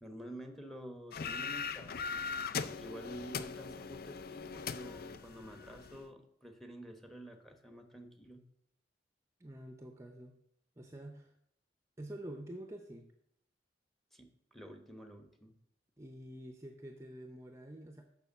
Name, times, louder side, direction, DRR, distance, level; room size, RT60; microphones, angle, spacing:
voice 1, 0.0-2.3 2.6-8.4 14.1-15.5, right 1 dB, ahead, 5 dB, 1.0 m, -49 dB
sound 1, 1.1-6.0, left 5 dB, 55° left, 0.5 m, -40 dB
voice 2, 9.4-10.4 10.8-11.3 12.0-13.1 16.0-18.0, right 1 dB, 15° right, 4 dB, 0.7 m, -47 dB
6.8 x 6.1 x 7.2 m, 0.75 s
head